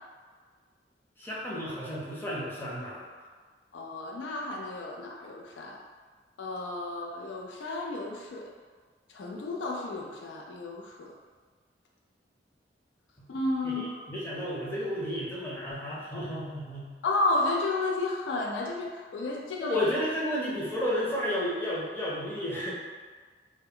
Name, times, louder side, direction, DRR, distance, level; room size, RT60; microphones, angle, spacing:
voice 1, 1.2-3.1 13.2-13.3 13.6-16.9 19.6-22.7, equal, 10° left, -7 dB, 0.5 m, -32 dB
voice 2, 3.7-5.8 6.4-8.5 9.1-11.1 13.3-14.0 17.0-19.8, left 2 dB, 85° left, -1 dB, 0.4 m, -32 dB
2.1 x 2.0 x 3.6 m, 1.5 s
head